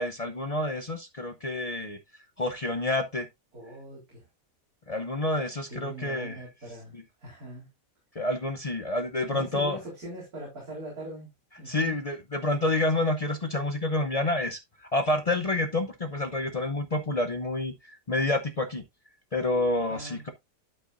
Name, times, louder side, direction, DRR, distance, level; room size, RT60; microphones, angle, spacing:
voice 1, 0.0-2.0 2.4-3.3 4.9-6.4 6.9-7.0 8.1-9.8 11.6-18.8 19.3-20.3, left 2 dB, 65° left, 0.3 m, -28 dB
voice 2, 3.5-4.3 5.7-7.7 9.3-11.3 11.6-12.0 19.9-20.3, right 1 dB, 60° right, 4.4 m, -41 dB
12.0 x 5.6 x 2.5 m
omnidirectional pair, 1.8 m